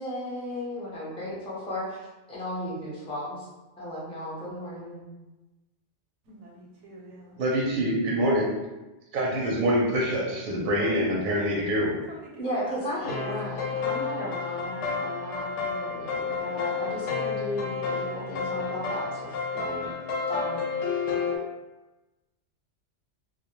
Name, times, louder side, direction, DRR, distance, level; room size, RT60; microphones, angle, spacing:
voice 1, 0.0-3.5 3.8-5.1 12.4-19.9 20.3-20.6, left 1 dB, 5° left, -7 dB, 0.5 m, -35 dB
voice 2, 6.2-7.4 12.1-13.3, right 2 dB, 90° right, -1 dB, 0.9 m, -45 dB
voice 3, 7.4-8.5 9.1-11.9, equal, 60° right, -2 dB, 0.6 m, -25 dB
sound 1, 13.0-21.4, left 5 dB, 80° left, 0.9 m, -31 dB
2.2 x 2.1 x 2.9 m, 1.1 s
omnidirectional pair, 1.2 m